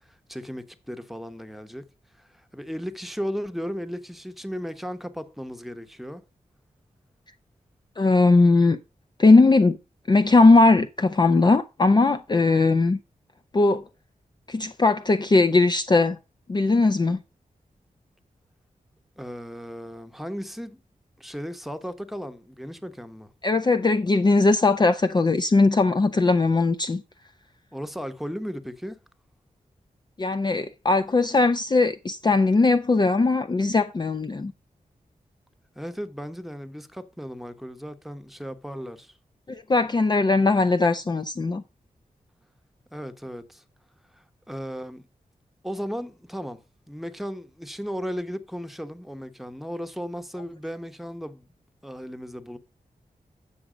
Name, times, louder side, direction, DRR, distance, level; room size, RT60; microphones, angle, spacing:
voice 1, 0.1-1.9 2.2-6.2 19.2-20.8 21.2-23.3 27.7-29.0 35.7-39.1 42.9-43.6 44.1-45.0 45.6-46.6 46.9-51.5 51.8-52.6, equal, ahead, 1.0 m, -35 dB
voice 2, 8.0-8.8 9.2-9.8 10.1-13.0 13.5-13.8 14.5-16.2 16.5-17.2 23.4-27.0 30.2-34.5 39.5-41.6, left 3 dB, 30° left, 0.5 m, -19 dB
8.7 x 6.0 x 5.0 m
wide cardioid pair, 75°, 14 cm